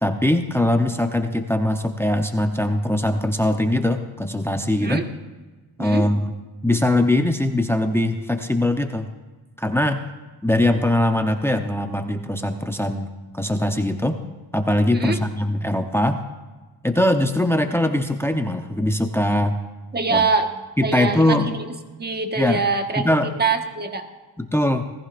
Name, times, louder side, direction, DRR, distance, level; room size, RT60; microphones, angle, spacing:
voice 1, 0.0-5.0 5.8-6.3 6.6-9.1 9.6-10.0 10.4-13.1 13.3-14.2 14.5-16.2 16.8-19.6 20.1-20.3 20.8-21.5 22.4-22.6 23.0-23.3 24.4-24.9, left 1 dB, 5° left, 6 dB, 0.8 m, -21 dB
voice 2, 19.9-20.5 20.8-21.7 22.0-24.0, right 4 dB, 25° right, 5 dB, 1.4 m, -24 dB
19.5 x 14.5 x 2.6 m, 1.2 s
cardioid pair, 85°, 41 cm